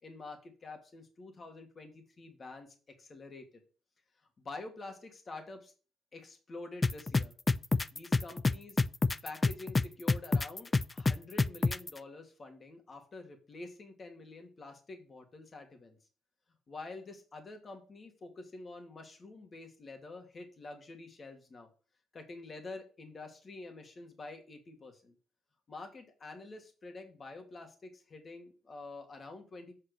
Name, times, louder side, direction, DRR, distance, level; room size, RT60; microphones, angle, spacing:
voice 1, 0.0-3.6 4.2-5.7 6.1-7.3 7.9-8.8 9.2-16.0 16.7-21.7 22.1-25.1 25.7-29.7, left 3 dB, 40° left, 4 dB, 2.3 m, -47 dB
sound 1, 6.8-11.9, left 3 dB, 25° left, 0.4 m, -27 dB
7.9 x 5.6 x 6.7 m, 0.37 s
cardioid pair, 90°, 0 cm